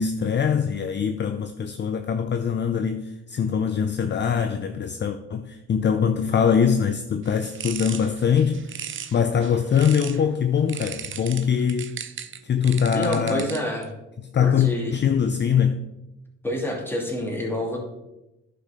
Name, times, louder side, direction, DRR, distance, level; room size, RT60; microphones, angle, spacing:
voice 1, 0.0-12.0 12.4-13.5 14.3-15.8, left 7 dB, 35° left, 0.6 m, -23 dB
sound 1, 7.2-10.3 10.7-13.8, right 8 dB, 40° right, 0.7 m, -37 dB
voice 2, 12.9-13.9 14.4-14.9 16.4-17.8, equal, 5° left, 2.5 m, -27 dB
11.0 x 4.7 x 5.0 m
cardioid pair, 90°, 30 cm